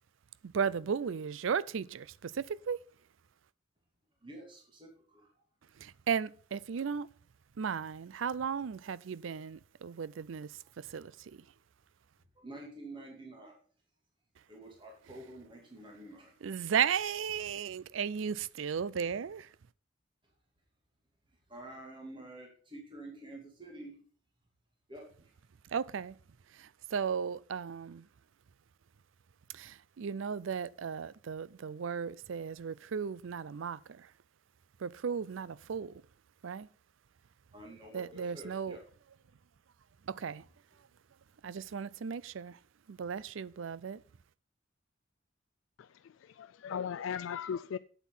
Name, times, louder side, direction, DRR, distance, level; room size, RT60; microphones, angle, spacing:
voice 1, 0.5-2.8 5.8-7.1 7.6-10.5 10.8-11.4 16.4-19.5 25.7-26.1 26.6-28.0 29.5-34.1 34.8-35.9 36.4-36.7 37.9-38.8 40.1-40.4 41.4-42.6 42.9-44.0, right 7 dB, 75° right, 0.4 m, -35 dB
voice 2, 4.2-5.3 12.4-13.6 14.5-16.3 21.5-24.0 24.9-25.3 37.5-38.8, right 1 dB, 25° right, 2.5 m, -48 dB
voice 3, 45.8-47.8, left 7 dB, 80° left, 0.3 m, -38 dB
8.2 x 8.2 x 5.6 m
head